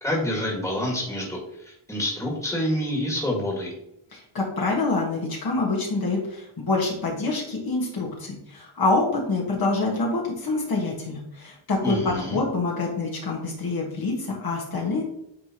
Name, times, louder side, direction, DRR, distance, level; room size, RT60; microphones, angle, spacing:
voice 1, 0.0-1.4 1.7-3.7 11.8-12.4, left 1 dB, 5° left, -3 dB, 1.8 m, -27 dB
voice 2, 4.1-15.0, left 3 dB, 50° left, -2 dB, 1.5 m, -26 dB
9.3 x 3.5 x 2.9 m, 0.80 s
wide cardioid pair, 110°, 47 cm